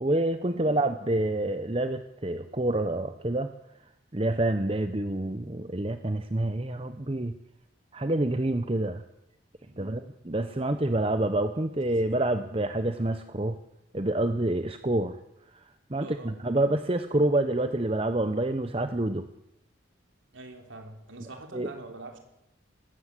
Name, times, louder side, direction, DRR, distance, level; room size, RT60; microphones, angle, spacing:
voice 1, 0.0-3.5 4.1-7.3 7.9-9.0 9.8-13.6 13.9-15.2 15.5-15.6 15.9-19.2 21.5-21.7, right 1 dB, 30° right, 9 dB, 0.8 m, -27 dB
voice 2, 16.0-16.3 20.3-22.2, right 2 dB, 75° right, 4 dB, 3.6 m, -44 dB
20.0 x 16.0 x 8.4 m, 0.85 s
head